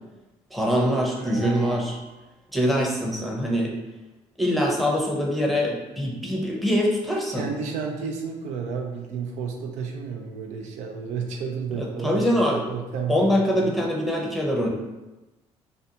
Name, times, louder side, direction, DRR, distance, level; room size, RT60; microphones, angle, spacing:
voice 1, 0.5-1.9 2.5-3.7 4.4-7.4 11.8-12.7 13.1-14.7, equal, ahead, -2 dB, 0.6 m, -23 dB
sound 1, 0.8-2.3, right 3 dB, 55° right, 0.8 m, -39 dB
voice 2, 1.4-1.9 7.3-13.7, right 5 dB, 75° right, 2 dB, 0.4 m, -32 dB
2.5 x 2.2 x 2.7 m, 1.0 s
supercardioid pair, 75°, 12 cm